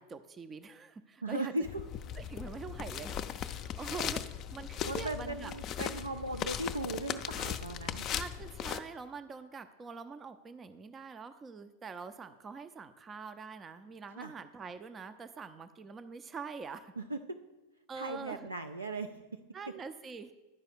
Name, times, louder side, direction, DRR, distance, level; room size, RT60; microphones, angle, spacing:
voice 1, 0.0-1.5 2.2-5.5 8.1-16.9 17.9-18.5 19.5-20.3, right 5 dB, 20° right, 10 dB, 0.4 m, -44 dB
voice 2, 1.2-1.8 4.9-8.1 14.2-14.3 17.0-17.4 17.9-19.1, right 2 dB, 85° right, 8 dB, 0.4 m, -37 dB
sound 1, 1.6-8.8, left 9 dB, 35° left, 0.4 m, -38 dB
11.0 x 4.8 x 6.1 m, 1.1 s
figure-of-eight pair, 90°, 0 cm